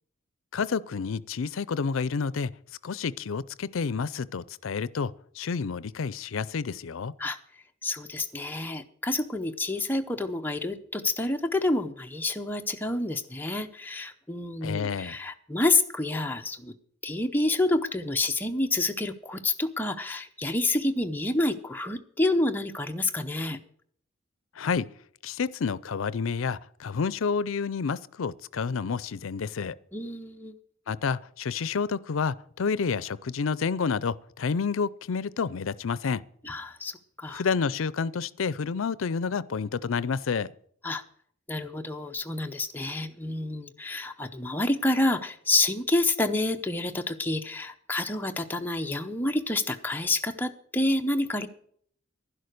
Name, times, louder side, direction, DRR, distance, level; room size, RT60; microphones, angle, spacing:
voice 1, 0.5-2.5 2.8-7.1 14.6-15.2 24.6-24.9 25.2-29.8 30.9-36.2 37.3-40.5, left 5 dB, 75° left, 0.5 m, -29 dB
voice 2, 7.8-16.7 17.0-23.6 29.9-30.6 36.4-37.4 40.8-41.0 41.5-51.5, left 2 dB, 10° left, 0.7 m, -28 dB
11.0 x 11.0 x 6.5 m
head